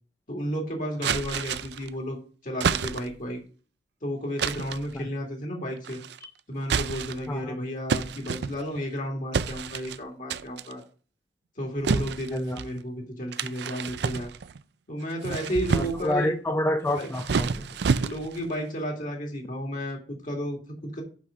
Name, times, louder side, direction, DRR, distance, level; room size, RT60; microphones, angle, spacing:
voice 1, 0.3-2.2 2.4-3.4 4.0-6.0 6.5-10.8 11.6-14.3 14.9-16.3 16.9-17.1 18.0-21.0, equal, 50° left, 2.2 m, -32 dB
sound 1, 1.0-1.9 2.6-3.3 4.4-4.9 5.8-6.2 6.6-7.3 7.9-8.9 9.3-10.0 10.3-10.7 11.8-12.7 13.3-14.6 15.1-16.2 16.9-18.5, right 5 dB, 65° right, 0.4 m, -29 dB
voice 2, 15.7-17.7, left 1 dB, 15° left, 0.6 m, -28 dB
6.2 x 5.7 x 6.3 m
head